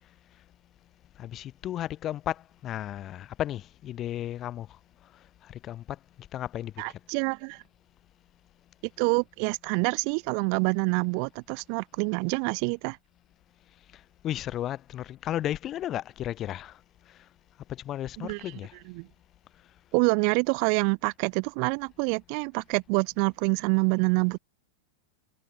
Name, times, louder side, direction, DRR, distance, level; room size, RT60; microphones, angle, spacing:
voice 1, 1.2-4.7 5.6-5.8 6.3-6.7 14.2-16.7 17.8-18.7, left 12 dB, 30° left, 4.2 m, -33 dB
voice 2, 6.8-7.6 9.0-13.0 18.2-18.4 19.0-19.1 19.9-24.4, right 40 dB or more, 45° right, 1.9 m, -26 dB
figure-of-eight pair, 90°, 0 cm